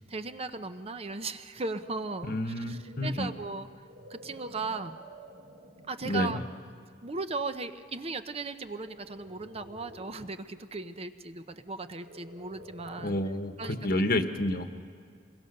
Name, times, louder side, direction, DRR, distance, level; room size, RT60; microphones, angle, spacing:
voice 1, 0.0-3.7 4.1-5.0 5.9-6.4 7.0-13.2 13.6-13.8, right 3 dB, 35° right, 9 dB, 0.8 m, -37 dB
voice 2, 2.2-3.3 6.0-6.4 13.0-14.7, left 1 dB, 55° left, 8 dB, 1.3 m, -29 dB
sound 1, 2.4-6.1 6.7-7.0 8.8-10.3 12.0-13.4, right 1 dB, 70° right, 5.7 m, -51 dB
27.0 x 22.0 x 6.7 m, 2.2 s
head